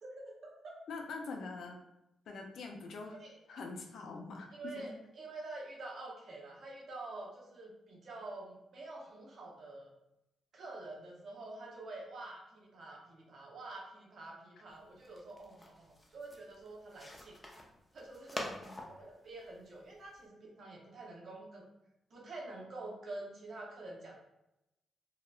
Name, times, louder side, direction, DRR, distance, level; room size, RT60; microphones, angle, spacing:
voice 1, 0.0-0.8 3.2-3.4 4.5-9.9 10.5-17.6 17.9-18.5 18.9-21.6 22.1-24.2, right 2 dB, 60° right, -2 dB, 0.7 m, -47 dB
voice 2, 0.9-1.8 2.3-3.2 3.5-5.0 18.4-18.7, left 3 dB, 75° left, 2 dB, 0.4 m, -44 dB
sound 1, 14.7-20.2, left 1 dB, 20° left, 0.5 m, -47 dB
2.8 x 2.0 x 2.3 m, 0.89 s
cardioid pair, 65°, 0 cm